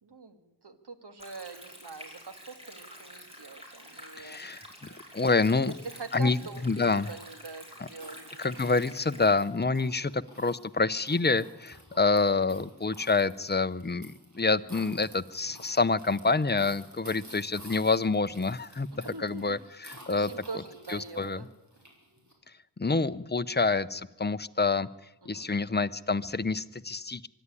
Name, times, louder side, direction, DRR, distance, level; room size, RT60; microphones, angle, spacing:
voice 1, 0.0-4.4 4.9-5.2 5.6-8.5 11.9-12.1 18.9-19.6 20.1-21.5 25.2-25.5, right 4 dB, 70° right, 9 dB, 1.9 m, -44 dB
Stream, 1.2-9.2, equal, 15° right, 5.5 m, -49 dB
voice 2, 4.2-4.6 5.1-5.7 6.1-7.1 7.8-7.9 8.4-20.3 20.9-21.4 22.8-24.9 25.3-27.3, left 3 dB, 25° left, 13 dB, 0.7 m, -27 dB
sound 1, 4.7-22.3, right 1 dB, 45° right, 5.6 m, -53 dB
24.0 x 11.0 x 9.9 m, 1.0 s
wide cardioid pair, 55°, 41 cm